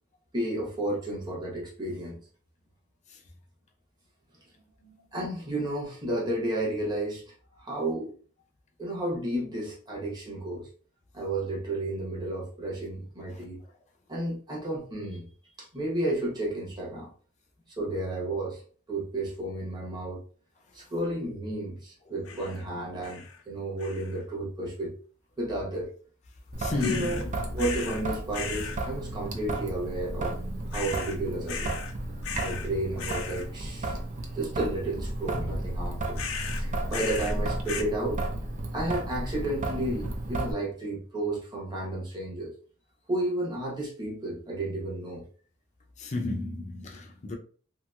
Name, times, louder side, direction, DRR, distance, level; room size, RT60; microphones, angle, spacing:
voice 1, 0.3-2.2 5.1-8.1 8.8-10.7 11.1-13.6 14.1-15.3 15.6-17.1 17.8-18.6 18.9-20.2 20.7-24.9 25.4-25.9 26.7-27.2 27.5-30.4 30.7-31.8 32.4-34.0 34.3-38.2 38.7-42.5 43.1-45.2, right 1 dB, 20° right, 1.0 m, -32 dB
sound 1, 22.3-22.6 23.0-23.4 23.8-24.2 26.8-27.2 27.6-28.0 28.3-28.8 30.7-31.2 31.5-31.9 32.2-32.7 33.0-33.5 36.2-37.4 37.7-37.8, left 6 dB, 90° left, 0.5 m, -37 dB
Traffic noise roadway noise / Drip / Trickle dribble, 26.5-40.5, right 2 dB, 35° right, 0.4 m, -33 dB
voice 2, 26.6-27.4 46.0-47.4, left 2 dB, 35° left, 0.5 m, -32 dB
2.9 x 2.8 x 2.3 m
head